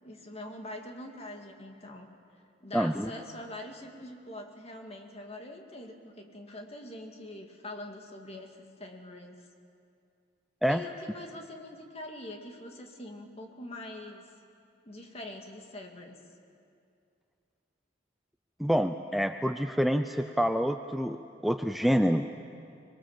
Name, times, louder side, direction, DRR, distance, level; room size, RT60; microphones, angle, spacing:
voice 1, 0.0-2.1 2.6-9.4 10.7-14.2 14.8-16.2, left 1 dB, 35° left, 2 dB, 2.2 m, -44 dB
voice 2, 2.7-3.1 10.6-10.8 18.6-21.2 21.4-22.3, equal, ahead, 7 dB, 0.5 m, -27 dB
25.5 x 22.0 x 7.4 m, 2.5 s
head